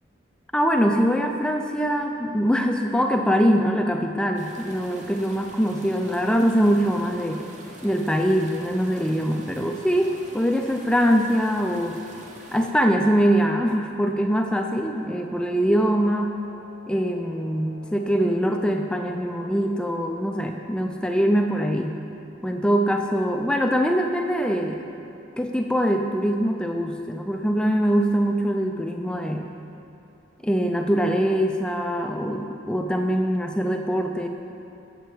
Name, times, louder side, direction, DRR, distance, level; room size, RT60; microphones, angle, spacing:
voice 1, 0.5-7.4 7.8-12.0 12.5-16.4 16.9-22.0 22.4-24.8 25.4-29.5 30.4-34.3, equal, 5° left, 3 dB, 0.4 m, -23 dB
sound 1, 4.3-12.7, right 1 dB, 40° right, 0.8 m, -45 dB
Wind instrument woodwind instrument, 14.0-20.5, left 3 dB, 70° right, 1.8 m, -49 dB
8.2 x 7.2 x 4.5 m, 2.8 s
head